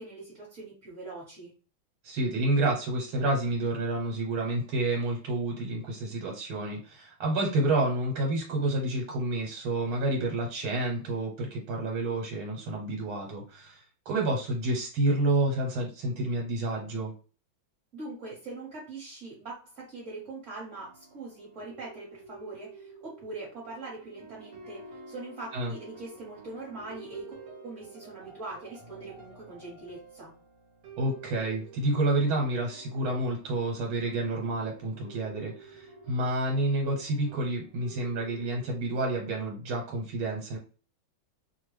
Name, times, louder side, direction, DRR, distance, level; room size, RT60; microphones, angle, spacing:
voice 1, 0.0-1.5 17.9-27.4 27.6-30.3, right 3 dB, 40° right, -5 dB, 1.4 m, -42 dB
voice 2, 2.0-17.1 25.5-25.7 31.0-40.6, right 2 dB, 90° right, 0 dB, 1.6 m, -29 dB
sound 1, 20.8-38.8, right 3 dB, 65° right, 1.4 m, -50 dB
3.3 x 2.2 x 3.1 m, 0.36 s
omnidirectional pair, 2.2 m